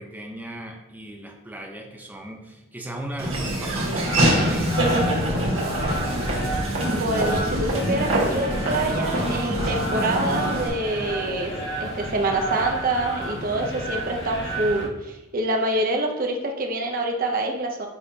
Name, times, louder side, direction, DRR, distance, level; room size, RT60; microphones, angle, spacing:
voice 1, 0.0-5.1, right 1 dB, 10° right, 1 dB, 0.8 m, -37 dB
Laughter / Walk footsteps, 3.2-10.7, right 1 dB, 75° right, 1.5 m, -24 dB
sound 1, 4.0-14.9, right 1 dB, 60° left, 1.8 m, -31 dB
voice 2, 6.8-11.5 11.8-17.9, right 2 dB, 45° right, 2 dB, 0.8 m, -26 dB
9.9 x 4.2 x 2.8 m, 1.0 s
head